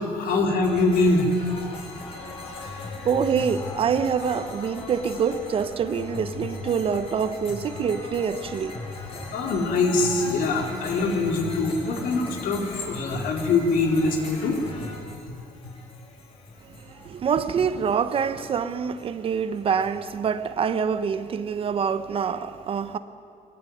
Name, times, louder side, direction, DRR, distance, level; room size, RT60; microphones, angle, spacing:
voice 1, 0.1-1.3 9.3-14.6, left 3 dB, 80° left, 4.2 m, -23 dB
sound 1, 0.6-20.1, left 3 dB, 40° left, 5.8 m, -38 dB
voice 2, 3.0-8.8 9.1-9.2 16.6-23.0, right 6 dB, 40° right, 1.0 m, -26 dB
22.5 x 21.0 x 9.4 m
cardioid pair, 140°, 14 cm